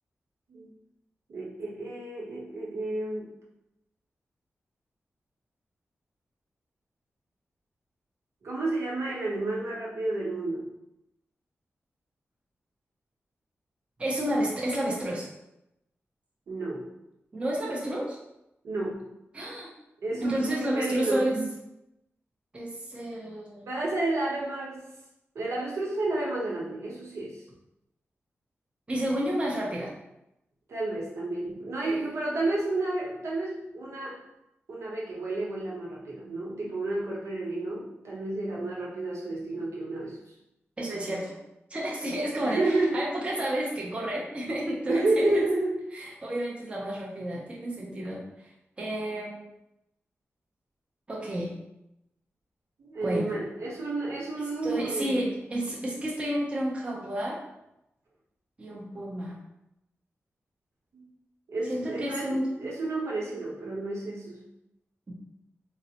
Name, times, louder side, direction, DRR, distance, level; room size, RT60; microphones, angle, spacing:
voice 1, 1.3-3.3 8.4-10.7 16.5-16.9 18.6-19.0 20.0-21.3 23.6-24.8 25.3-27.4 30.7-34.2 34.7-40.2 42.4-43.0 44.9-45.8 52.8-55.2 60.9-61.0 61.5-64.4, right 2 dB, 90° right, -4 dB, 0.9 m, -31 dB
voice 2, 14.0-15.3 17.3-18.2 19.3-19.7 20.2-21.5 22.5-23.7 28.9-29.9 31.8-32.2 40.8-41.4 41.7-45.4 45.9-48.5 48.8-49.4 51.1-51.5 53.0-53.3 54.4-57.4 58.6-59.4 61.7-62.5 65.1-65.2, right 1 dB, 25° right, -4 dB, 0.5 m, -31 dB
3.9 x 2.0 x 2.8 m, 0.87 s
wide cardioid pair, 160°, 5 cm